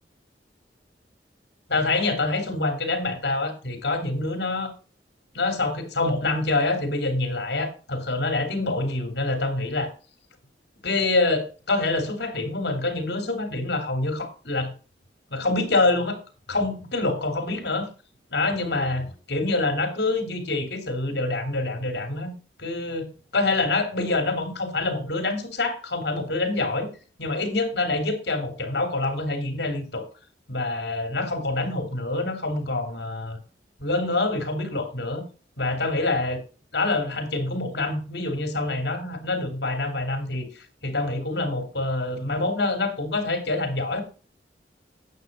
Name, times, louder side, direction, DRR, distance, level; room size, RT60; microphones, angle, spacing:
voice 1, 1.7-4.7 5.3-9.9 10.8-14.7 15.3-16.2 16.5-17.9 18.3-22.3 22.6-23.1 23.3-26.9 27.2-30.0 30.5-33.4 33.8-35.2 35.6-36.4 36.7-40.5 40.8-44.0, left 2 dB, 65° left, 7 dB, 3.0 m, -26 dB
9.3 x 6.9 x 5.3 m, 0.35 s
head